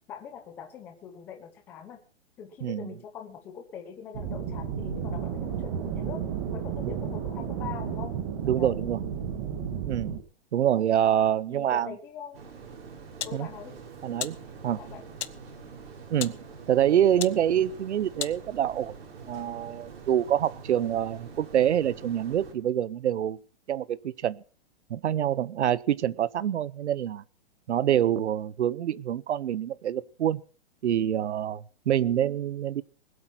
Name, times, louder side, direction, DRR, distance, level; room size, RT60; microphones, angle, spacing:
voice 1, 0.1-2.0 2.4-6.2 6.5-8.2 8.6-8.8 11.5-12.4 13.2-13.8 14.8-15.0, left 8 dB, 5° left, 0.7 m, -42 dB
sound 1, 4.1-10.2, right 7 dB, 20° right, 1.6 m, -32 dB
voice 2, 8.4-9.0 9.8-10.2 10.5-11.9 13.3-13.5 14.0-14.4 14.6-14.8 16.1-16.3 16.7-18.9 19.3-23.4 23.7-24.4 24.9-27.2 27.7-30.4 30.8-32.8, right 10 dB, 90° right, 0.8 m, -26 dB
sound 2, 12.3-22.5, right 5 dB, 60° right, 5.4 m, -45 dB
sound 3, 12.6-18.9, left 9 dB, 80° left, 1.2 m, -41 dB
20.5 x 8.5 x 6.0 m
hypercardioid pair, 180°, 33 cm